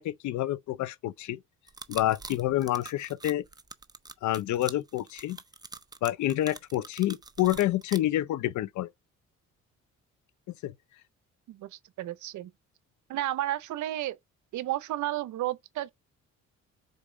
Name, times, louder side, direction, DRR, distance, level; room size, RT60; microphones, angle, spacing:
voice 1, 0.0-1.4 1.9-3.4 4.2-5.4 6.0-8.9 10.6-10.7, left 14 dB, 70° left, 0.5 m, -28 dB
sound 1, 1.7-8.0, right 3 dB, 15° right, 0.5 m, -44 dB
voice 2, 11.5-12.5 13.1-14.2 14.5-15.9, right 14 dB, 75° right, 0.7 m, -32 dB
5.2 x 4.0 x 5.0 m
cardioid pair, 90°, 30 cm